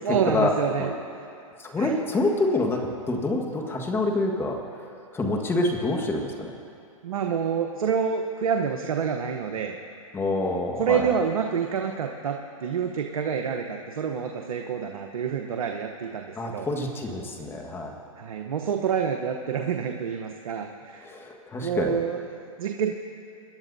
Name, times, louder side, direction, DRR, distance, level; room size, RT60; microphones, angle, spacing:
voice 1, 0.0-0.9 1.8-2.0 7.0-9.8 10.8-16.7 18.2-21.1 21.6-22.9, right 7 dB, 75° right, 3 dB, 0.9 m, -28 dB
voice 2, 1.6-2.8 3.1-4.9 5.1-6.5 10.1-11.0 16.4-17.9 21.0-22.0, left 2 dB, 15° left, 1 dB, 1.5 m, -26 dB
25.5 x 11.0 x 2.7 m, 2.5 s
hypercardioid pair, 125°, 18 cm